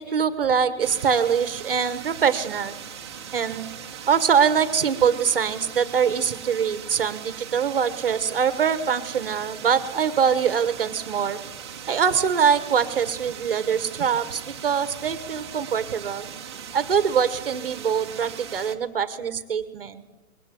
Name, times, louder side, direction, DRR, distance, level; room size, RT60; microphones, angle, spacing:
voice 1, 0.0-2.7 3.3-3.7 4.1-11.4 11.9-16.3 16.7-20.0, right 7 dB, 35° right, 12 dB, 1.2 m, -23 dB
sound 1, 0.8-18.7, right 8 dB, 15° right, 1.0 m, -39 dB
26.0 x 21.5 x 7.6 m, 1.1 s
hypercardioid pair, 175°, 46 cm